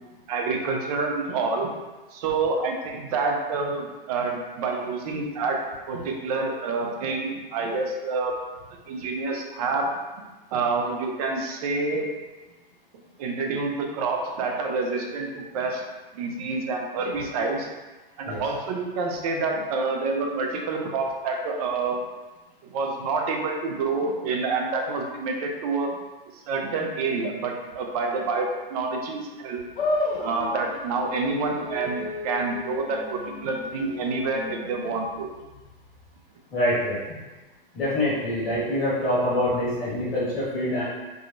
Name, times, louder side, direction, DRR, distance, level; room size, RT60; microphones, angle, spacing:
voice 1, 0.3-1.7 2.1-5.6 5.9-8.3 8.9-9.9 10.5-12.1 13.2-15.8 16.1-17.7 18.2-22.0 22.6-25.9 26.5-29.6 30.1-35.3, right 3 dB, 40° right, 2 dB, 0.5 m, -27 dB
sound 1, 29.8-36.2, left 2 dB, 65° left, 0.6 m, -34 dB
voice 2, 36.5-37.2 37.7-40.9, left 1 dB, 85° left, -7 dB, 1.4 m, -25 dB
3.5 x 2.1 x 2.4 m, 1.2 s
hypercardioid pair, 135°, 29 cm